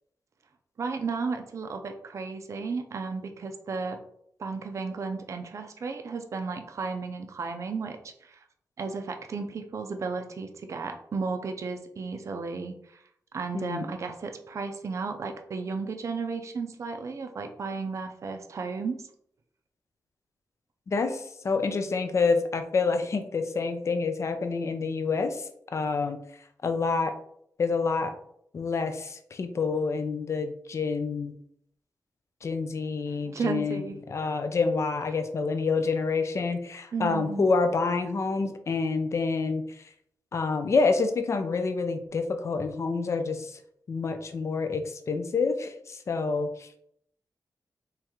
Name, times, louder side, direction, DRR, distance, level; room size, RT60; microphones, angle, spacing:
voice 1, 0.8-4.0 4.4-8.4 8.8-13.0 13.3-19.1 33.3-34.0 36.9-37.5, right 4 dB, 45° right, 6 dB, 0.4 m, -34 dB
voice 2, 13.5-13.9 20.9-26.2 26.6-27.1 27.6-28.1 28.5-31.3 32.4-39.6 40.3-43.6 43.9-46.7, left 4 dB, 45° left, 8 dB, 0.4 m, -28 dB
3.6 x 3.1 x 3.0 m, 0.70 s
wide cardioid pair, 160°, 7 cm